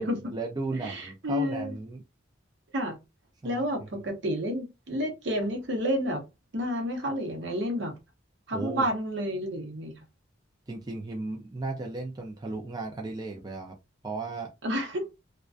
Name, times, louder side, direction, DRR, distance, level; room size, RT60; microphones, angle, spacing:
voice 1, 0.0-2.0 3.4-3.9 8.5-8.8 10.7-13.8 14.0-14.5, right 3 dB, 20° right, 0.3 m, -35 dB
voice 2, 0.8-1.7 2.7-3.0 3.4-6.2 6.5-7.9 8.5-9.9 14.6-15.0, equal, 65° right, 0.7 m, -30 dB
2.4 x 2.1 x 2.4 m
head